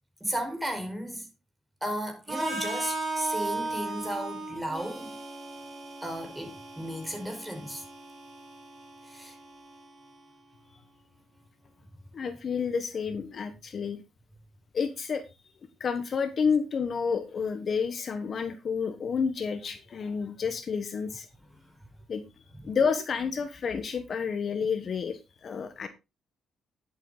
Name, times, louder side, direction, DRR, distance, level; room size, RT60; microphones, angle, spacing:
voice 1, 0.2-1.3 1.8-5.2 6.0-7.8 9.1-9.3, equal, 5° right, 4.9 m, -34 dB
Harmonica, 2.3-10.2, right 2 dB, 35° right, 4.8 m, -37 dB
voice 2, 12.1-14.0 14.7-15.2 15.8-21.3 22.1-22.2 22.6-25.9, left 6 dB, 50° left, 1.2 m, -30 dB
10.5 x 8.3 x 3.9 m
cardioid pair, 90°, 0 cm